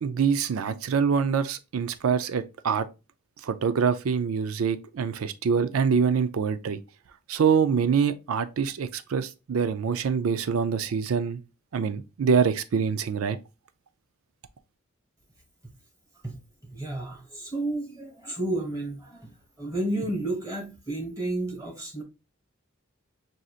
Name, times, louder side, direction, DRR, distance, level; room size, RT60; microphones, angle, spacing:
voice 1, 0.0-2.9 3.4-6.8 7.3-11.4 11.7-13.4, right 6 dB, 90° right, 0.4 m, -25 dB
voice 2, 16.6-19.3 19.6-22.0, right 2 dB, 15° right, 1.4 m, -31 dB
6.1 x 2.8 x 2.4 m
head